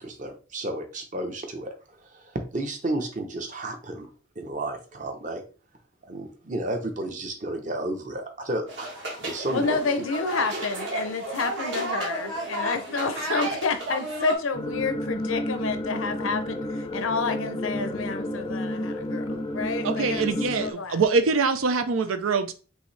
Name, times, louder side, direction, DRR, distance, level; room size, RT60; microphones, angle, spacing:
voice 1, 0.0-4.1 4.4-5.4 6.1-9.8, right 1 dB, 35° right, 0.8 m, -32 dB
sound 1, 8.7-14.4, right 1 dB, 60° right, 1.5 m, -32 dB
voice 2, 9.5-20.3 20.6-21.0, left 4 dB, 80° left, 0.7 m, -30 dB
sound 2, 14.5-20.7, left 1 dB, 20° left, 0.4 m, -31 dB
voice 3, 19.8-22.5, right 4 dB, 85° right, 0.6 m, -24 dB
5.5 x 2.7 x 3.2 m
head